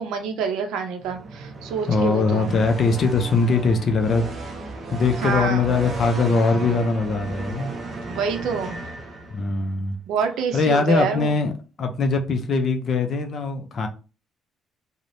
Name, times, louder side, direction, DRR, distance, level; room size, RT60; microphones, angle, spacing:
voice 1, 0.0-2.5 5.2-5.7 8.1-8.7 10.1-11.3, right 5 dB, 75° right, 0.5 m, -27 dB
sound 1, 1.0-9.7, right 3 dB, 25° right, 0.5 m, -34 dB
voice 2, 1.9-4.3 4.9-7.7 9.3-10.0 10.5-11.5 11.8-13.9, left 4 dB, 35° left, 0.4 m, -21 dB
3.1 x 2.0 x 2.5 m
cardioid pair, 180°, 0 cm